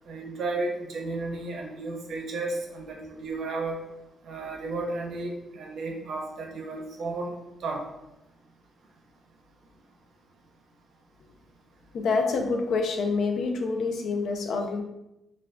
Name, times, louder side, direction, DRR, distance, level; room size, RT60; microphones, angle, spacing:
voice 1, 0.1-3.8 4.2-7.3 7.6-7.8, right 3 dB, 60° right, 1 dB, 0.5 m, -33 dB
voice 2, 11.9-14.8, left 4 dB, 70° left, 3 dB, 0.4 m, -27 dB
2.2 x 2.1 x 3.5 m, 0.91 s
wide cardioid pair, 170°, 0 cm